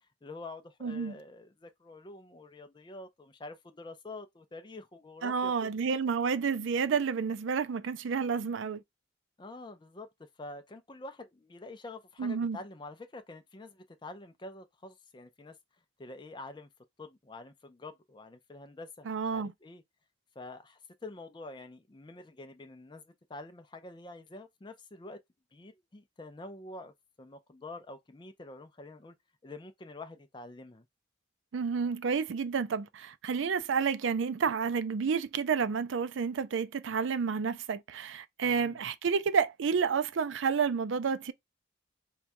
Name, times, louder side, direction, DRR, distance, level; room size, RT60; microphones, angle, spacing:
voice 1, 0.0-5.7 9.4-15.6 16.0-16.7 17.0-19.8 20.4-25.2 25.5-29.1 29.4-30.8 38.4-38.8, left 2 dB, 25° left, 0.4 m, -47 dB
voice 2, 0.8-1.1 5.2-8.8 12.2-12.6 19.1-19.5 31.5-41.3, right 6 dB, 70° right, 0.4 m, -30 dB
4.5 x 2.3 x 2.6 m
head